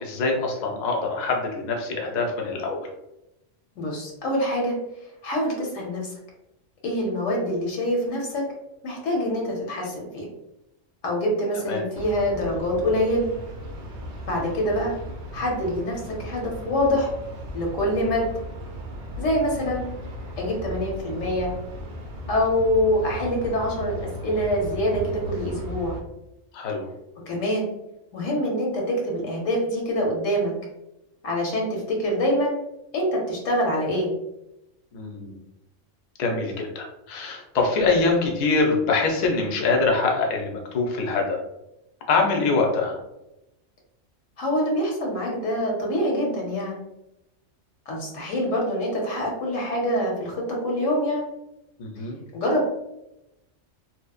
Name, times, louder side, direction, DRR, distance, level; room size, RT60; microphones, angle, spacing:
voice 1, 0.0-2.8 11.7-11.8 26.5-26.9 34.9-35.4 36.2-41.4 42.1-43.0 51.8-52.2, left 3 dB, 60° left, 1 dB, 0.4 m, -24 dB
voice 2, 3.8-4.8 5.2-6.1 6.8-8.4 8.8-10.3 11.0-13.3 14.2-14.9 15.3-17.1 17.5-18.3 19.2-19.8 20.4-21.5 22.3-26.0 27.3-27.7 28.1-30.5 31.2-32.5 32.9-34.1 44.4-46.8 47.9-51.2 52.3-52.7, equal, 80° left, -1 dB, 1.0 m, -25 dB
sound 1, 11.9-26.0, equal, 60° right, 0.5 m, -36 dB
2.8 x 2.0 x 2.3 m, 0.88 s
omnidirectional pair, 1.3 m